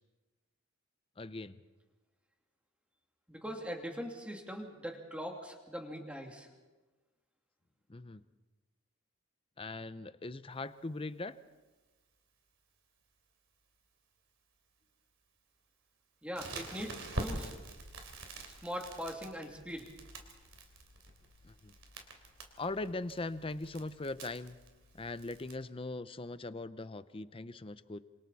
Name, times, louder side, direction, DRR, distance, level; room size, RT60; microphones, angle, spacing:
voice 1, 1.2-1.6 7.9-8.2 9.6-11.4 21.4-21.7 22.6-24.6 24.9-28.0, left 2 dB, 25° left, 13 dB, 0.6 m, -40 dB
voice 2, 3.3-6.5 16.2-17.6 18.5-19.9, equal, 5° right, 1 dB, 2.6 m, -41 dB
Crackle, 16.3-25.5, right 2 dB, 65° right, 3.5 m, -45 dB
27.5 x 27.0 x 4.2 m, 1.2 s
head